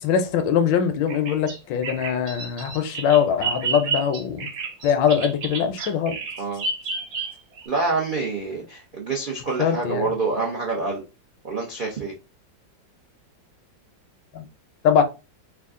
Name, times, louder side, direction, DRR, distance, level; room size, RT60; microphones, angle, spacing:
voice 1, 0.0-4.5 4.8-6.2 9.6-10.1 14.3-14.5 14.8-15.0, left 8 dB, 80° left, 1.3 m, -22 dB
Bird vocalization bird call bird song, 1.1-7.6, right 5 dB, 55° right, 0.8 m, -30 dB
voice 2, 7.7-11.0 11.4-12.1, right 3 dB, 75° right, 0.4 m, -26 dB
3.6 x 2.3 x 3.6 m
omnidirectional pair, 2.0 m